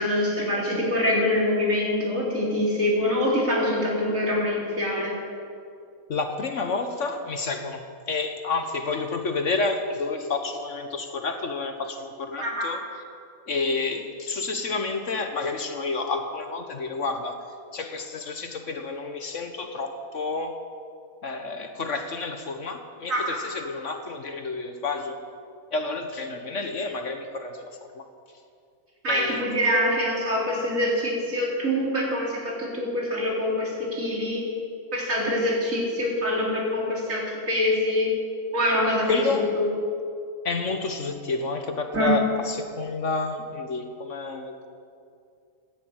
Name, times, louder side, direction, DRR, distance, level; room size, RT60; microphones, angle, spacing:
voice 1, 0.0-5.1 12.4-12.7 23.1-23.4 29.0-33.7 34.0-34.4 34.9-38.1 38.5-39.7 41.9-42.2, left 1 dB, 60° right, -4 dB, 4.2 m, -24 dB
voice 2, 6.1-12.8 13.5-17.4 17.7-20.6 21.2-25.2 25.7-28.1 29.1-29.5 39.1-39.5 40.4-44.7, left 3 dB, 55° left, 6 dB, 1.4 m, -30 dB
15.5 x 9.9 x 8.9 m, 2.4 s
omnidirectional pair, 1.6 m